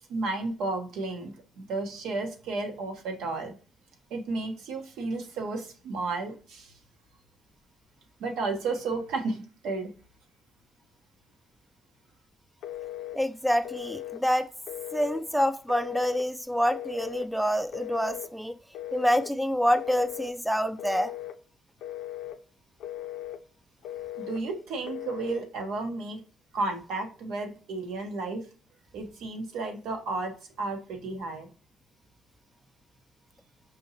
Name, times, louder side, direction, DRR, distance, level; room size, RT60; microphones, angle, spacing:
voice 1, 0.1-3.6 4.1-6.7 8.2-9.9 24.2-26.2 26.5-28.5 28.9-31.5, right 3 dB, 85° right, 4 dB, 0.9 m, -33 dB
Telephone, 12.6-13.2 13.6-14.2 14.7-15.2 15.7-16.3 16.7-17.3 17.7-18.3 18.7-19.3 19.8-20.3 20.8-21.4 21.8-22.4 22.8-23.4 23.8-24.4 24.8-25.4, left 13 dB, 85° left, 0.4 m, -38 dB
voice 2, 13.2-14.5 14.9-18.6 18.9-21.1, equal, ahead, 9 dB, 0.3 m, -27 dB
5.3 x 2.7 x 2.7 m, 0.38 s
cardioid pair, 90°, 0 cm